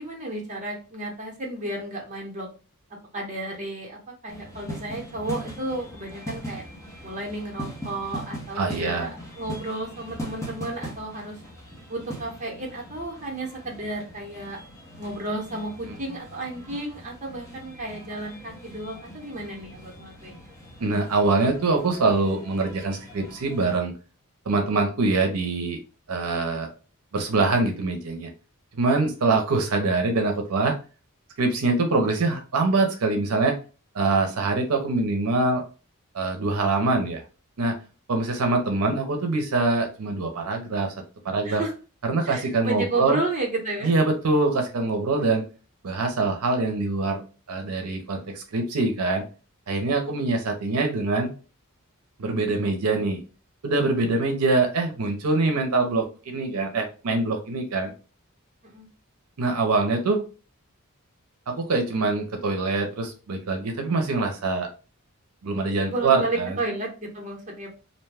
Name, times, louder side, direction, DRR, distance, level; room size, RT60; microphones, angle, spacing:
voice 1, 0.0-2.5 3.1-4.0 4.2-6.6 7.0-11.4 11.9-14.6 15.0-20.4 41.4-41.7 42.3-43.9 50.0-50.4 50.7-50.9 58.6-58.9 65.9-67.7, right 2 dB, 35° right, 0 dB, 0.9 m, -32 dB
sound 1, 4.3-23.8, equal, 15° left, 0.8 m, -41 dB
voice 2, 8.6-9.1 20.8-23.9 24.5-25.8 26.1-26.7 27.1-28.3 28.8-30.7 31.4-33.6 33.9-35.6 36.1-37.2 37.6-37.8 38.1-40.9 41.2-41.6 42.0-43.2 43.8-45.4 45.8-47.2 47.5-49.2 49.7-51.3 52.2-53.2 53.6-57.9 59.4-60.2 61.5-64.7 65.4-66.6, right 3 dB, 90° right, 3 dB, 0.6 m, -24 dB
2.6 x 2.2 x 3.3 m, 0.35 s
head